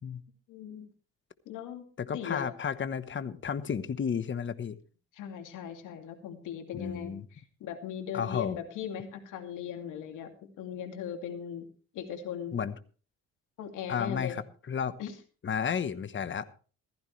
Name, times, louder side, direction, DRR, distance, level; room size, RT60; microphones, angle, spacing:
voice 1, 0.5-0.9 1.5-1.8 2.1-2.5 5.1-11.7 11.9-12.6 13.6-14.4 15.0-15.1, left 8 dB, 90° left, 5 dB, 2.6 m, -39 dB
voice 2, 2.0-4.8 6.7-7.3 8.1-8.6 12.5-12.7 13.9-15.0 15.4-16.5, left 7 dB, 40° left, 13 dB, 1.1 m, -32 dB
15.0 x 15.0 x 3.2 m, 0.38 s
cardioid pair, 90°, 30 cm